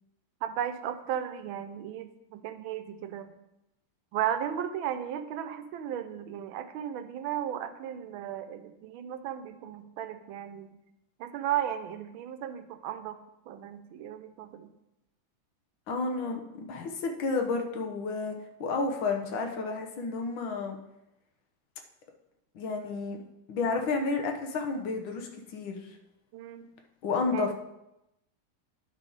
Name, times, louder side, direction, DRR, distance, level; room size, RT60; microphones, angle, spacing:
voice 1, 0.4-3.3 4.1-10.7 11.2-13.2 13.5-14.7 26.3-26.7 27.3-27.5, right 10 dB, 80° right, 9 dB, 1.4 m, -35 dB
voice 2, 15.9-18.3 18.6-20.8 22.5-23.2 23.5-26.0 27.0-27.5, left 4 dB, 70° left, 3 dB, 1.7 m, -31 dB
10.5 x 5.3 x 3.9 m, 0.88 s
omnidirectional pair, 2.3 m